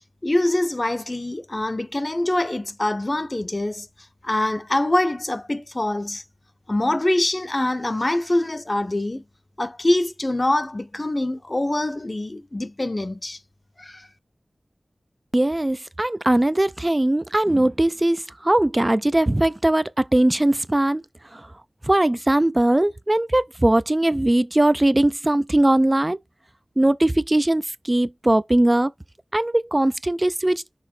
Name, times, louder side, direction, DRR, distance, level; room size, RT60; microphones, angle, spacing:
voice 1, 0.2-3.9 4.2-6.2 6.7-9.2 9.6-13.4 13.8-14.1, left 1 dB, 35° left, 0.7 m, -24 dB
voice 2, 15.3-21.0 21.3-21.5 21.8-26.2 26.8-28.9 29.3-30.6, right 1 dB, 25° right, 0.4 m, -20 dB
6.4 x 3.7 x 4.3 m
wide cardioid pair, 65°, 0 cm